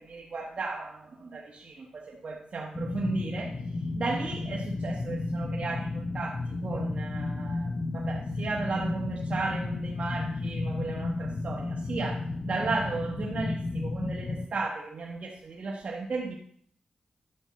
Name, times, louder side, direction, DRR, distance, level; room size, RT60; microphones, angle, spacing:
voice 1, 0.0-3.5 4.0-16.4, right 3 dB, 55° right, -1 dB, 1.2 m, -35 dB
sound 1, 2.7-14.5, left 2 dB, 50° left, 0.7 m, -33 dB
11.0 x 7.1 x 4.2 m, 0.64 s
cardioid pair, 80°, 3 cm